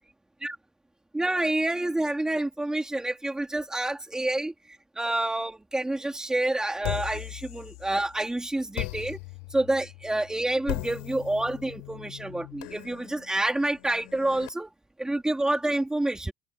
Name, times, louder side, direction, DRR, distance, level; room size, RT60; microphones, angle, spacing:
voice 1, 1.1-9.2 9.5-14.7 15.0-16.3, right 1 dB, 10° right, 4.1 m, -28 dB
sound 1, 6.8-8.2 8.7-14.5, left 35 dB, 90° left, 7.5 m, -38 dB
cardioid pair, 115°, 8 cm